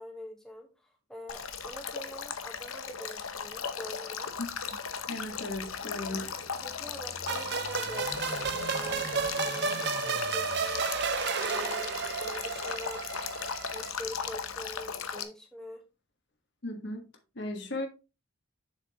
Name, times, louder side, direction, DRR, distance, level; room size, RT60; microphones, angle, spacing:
voice 1, 0.0-4.4 6.0-10.9 11.4-13.0 13.7-15.8, equal, 5° left, 1.3 m, -45 dB
Male speech man speaking / Stream / Trickle dribble, 1.3-15.2, left 6 dB, 80° left, 0.9 m, -37 dB
Car passing by / Idling, 4.3-15.0, left 1 dB, 20° left, 1.0 m, -48 dB
voice 2, 5.1-6.3 16.6-17.0 17.3-17.9, left 2 dB, 55° left, 1.3 m, -36 dB
sound 1, 7.3-13.9, right 6 dB, 55° right, 0.6 m, -32 dB
7.1 x 7.1 x 3.0 m
head